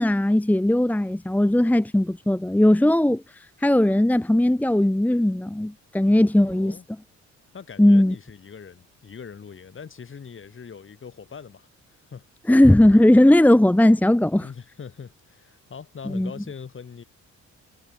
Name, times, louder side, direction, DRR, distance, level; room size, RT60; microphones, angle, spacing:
voice 1, 0.0-6.8 7.8-8.2 12.5-14.5 16.1-16.3, left 1 dB, 5° left, 1.1 m, -18 dB
voice 2, 6.4-6.8 7.5-12.3 14.4-17.0, left 6 dB, 40° left, 6.3 m, -42 dB
cardioid pair, 90°, 30 cm